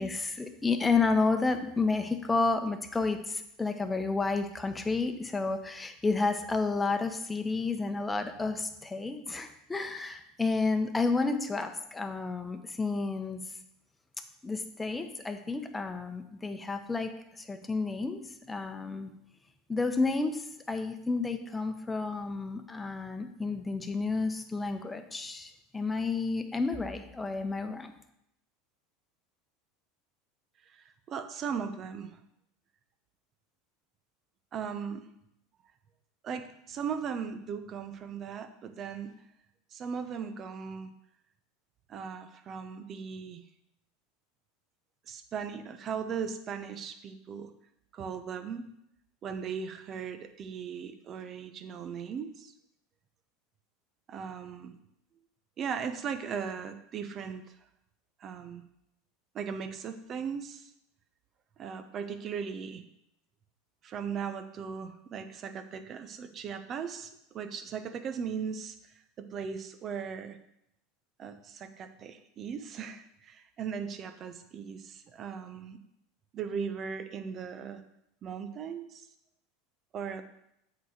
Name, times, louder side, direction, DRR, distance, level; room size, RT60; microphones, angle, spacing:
voice 1, 0.0-13.4 14.4-17.1 17.4-18.2 18.5-19.1 19.7-27.9, left 3 dB, 15° left, 6 dB, 1.0 m, -31 dB
voice 2, 30.7-32.2 34.5-35.1 36.2-39.1 39.7-40.9 41.9-43.4 45.1-47.5 47.9-48.7 49.2-52.5 54.1-54.7 55.6-57.4 58.2-58.7 59.3-60.7 61.6-62.8 63.8-68.8 69.2-70.4 71.2-75.8 76.3-77.8 78.2-79.0 79.9-80.2, right 6 dB, 40° right, 9 dB, 0.9 m, -38 dB
8.1 x 4.1 x 6.5 m, 0.79 s
hypercardioid pair, 85°, 0 cm